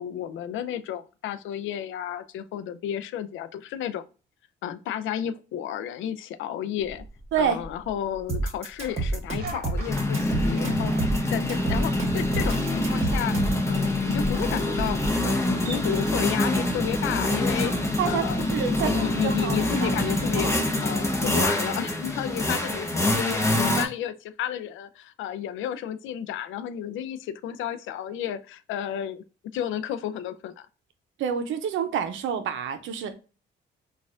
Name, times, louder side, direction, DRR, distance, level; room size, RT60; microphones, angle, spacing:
voice 1, 0.0-4.0 4.6-7.0 7.4-10.9 11.3-13.4 13.7-18.4 18.7-20.5 20.8-29.2 29.5-30.7, left 10 dB, 80° left, 0.4 m, -32 dB
sound 1, 7.0-7.1 7.4-7.6 8.9-23.9, left 1 dB, 15° left, 0.7 m, -25 dB
voice 2, 7.3-7.6 18.0-19.9 20.4-20.6 31.2-33.1, right 8 dB, 75° right, 0.6 m, -28 dB
sound 2, 8.3-13.7, right 3 dB, 35° right, 1.5 m, -28 dB
sound 3, 9.4-20.3, right 3 dB, 50° right, 1.1 m, -44 dB
4.0 x 2.4 x 2.4 m
cardioid pair, 90°, 20 cm